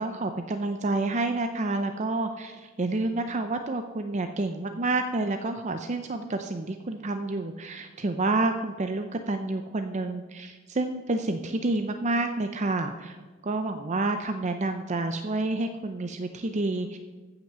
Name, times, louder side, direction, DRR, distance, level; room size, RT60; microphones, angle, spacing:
voice 1, 0.0-13.2 13.4-17.0, right 2 dB, 35° right, 7 dB, 0.6 m, -29 dB
14.5 x 5.9 x 6.8 m, 1.3 s
head